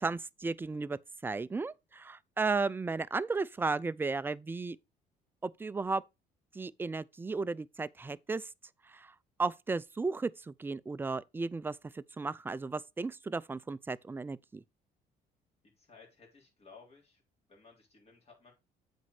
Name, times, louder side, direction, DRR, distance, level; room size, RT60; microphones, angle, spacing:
voice 1, 0.0-4.8 5.4-6.0 6.5-8.5 8.9-14.6, right 3 dB, 15° right, 0.3 m, -35 dB
voice 2, 15.6-17.2 17.5-18.5, left 4 dB, 35° left, 3.7 m, -57 dB
8.0 x 4.4 x 4.8 m
cardioid pair, 110°, 17 cm